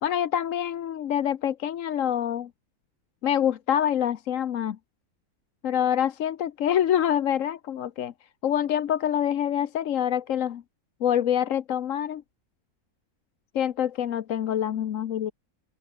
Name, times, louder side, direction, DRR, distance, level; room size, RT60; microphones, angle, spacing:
voice 1, 0.0-2.5 3.2-4.8 5.6-8.1 8.4-10.6 11.0-12.2 13.5-15.3, left 10 dB, 60° left, 1.1 m, -26 dB
open air
omnidirectional pair, 1.6 m